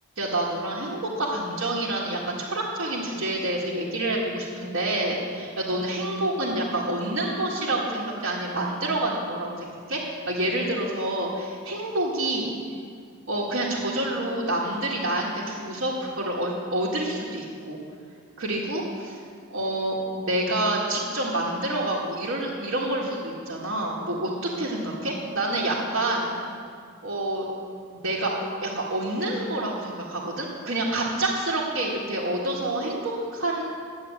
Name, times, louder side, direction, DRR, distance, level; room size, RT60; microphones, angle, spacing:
voice 1, 0.2-12.5 13.3-17.8 18.4-19.2 19.5-26.3 27.0-27.5 27.9-28.3 28.6-33.6, right 1 dB, 65° right, -7 dB, 1.9 m, -28 dB
11.5 x 8.5 x 7.8 m, 2.2 s
head